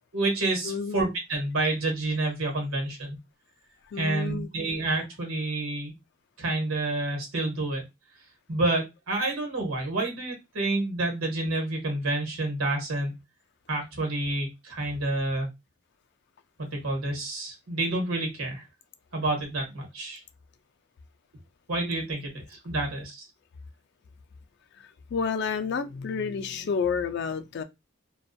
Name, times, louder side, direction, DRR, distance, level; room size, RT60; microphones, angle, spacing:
voice 1, 0.1-3.2 4.0-5.9 6.4-7.8 8.5-13.1 13.7-15.5 16.6-18.6 19.1-20.2 21.7-23.2, right 2 dB, 85° right, 1.1 m, -29 dB
voice 2, 0.6-1.0 3.9-4.5 24.8-27.6, left 5 dB, 55° left, 0.3 m, -30 dB
2.4 x 2.2 x 2.5 m
head